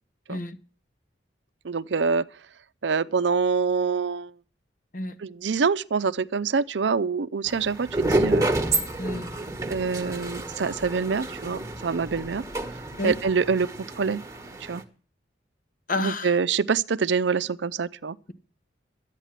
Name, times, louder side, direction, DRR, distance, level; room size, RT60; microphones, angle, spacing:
voice 1, 1.6-2.3 2.8-4.3 5.2-8.5 9.7-12.4 13.0-13.7 13.9-14.2 14.6-14.8 16.0-18.2, right 5 dB, 75° right, 0.5 m, -25 dB
sound 1, 7.5-14.8, right 2 dB, 20° right, 1.3 m, -29 dB
voice 2, 9.0-9.3 13.0-13.1 15.9-16.4, left 2 dB, 45° left, 1.0 m, -30 dB
12.5 x 9.1 x 7.4 m
head